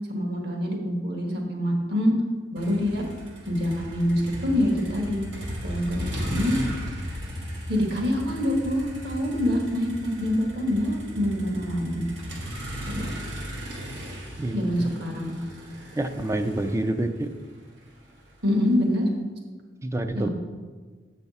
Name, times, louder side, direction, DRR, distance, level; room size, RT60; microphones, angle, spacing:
voice 1, 0.1-2.1 2.5-3.0 3.5-5.2 5.6-6.5 7.7-12.0 12.9-13.1 14.5-15.4 18.4-19.1 20.1-20.3, left 1 dB, 60° right, 1 dB, 1.4 m, -25 dB
Motor vehicle (road), 2.6-18.7, equal, 85° right, 1.7 m, -36 dB
voice 2, 14.4-14.9 16.0-17.3 19.8-20.3, right 1 dB, 15° right, 8 dB, 0.3 m, -27 dB
8.1 x 5.8 x 4.1 m, 1.5 s
head